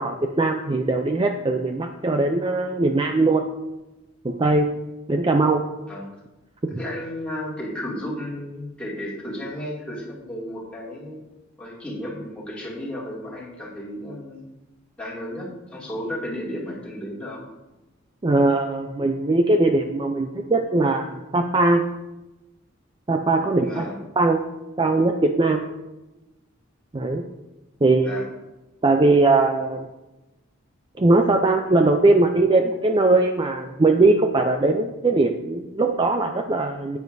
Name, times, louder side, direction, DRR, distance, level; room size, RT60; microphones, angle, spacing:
voice 1, 0.0-3.5 4.2-4.7 5.1-5.6 6.6-6.8 18.2-21.8 23.1-23.9 24.2-24.4 24.8-25.7 26.9-27.2 27.8-28.2 28.8-29.9 31.0-37.0, right 2 dB, 25° right, 4 dB, 0.4 m, -20 dB
voice 2, 6.7-11.2 11.6-14.4 15.0-17.4 23.6-24.0 28.0-28.3, left 1 dB, 5° left, -7 dB, 2.5 m, -33 dB
9.6 x 9.3 x 2.7 m, 1.0 s
head